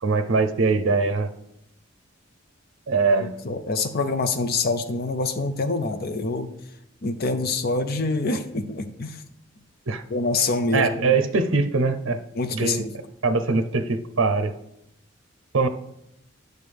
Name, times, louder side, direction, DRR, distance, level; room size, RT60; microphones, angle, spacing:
voice 1, 0.0-1.3 2.9-3.4 9.9-10.0 10.7-12.2 12.5-12.9 13.2-14.5 15.5-15.7, right 4 dB, 70° right, 9 dB, 0.6 m, -22 dB
voice 2, 3.2-6.5 7.0-9.2 10.1-11.2 12.4-12.9, left 3 dB, 50° left, 8 dB, 0.6 m, -26 dB
9.0 x 6.5 x 3.4 m, 0.79 s
head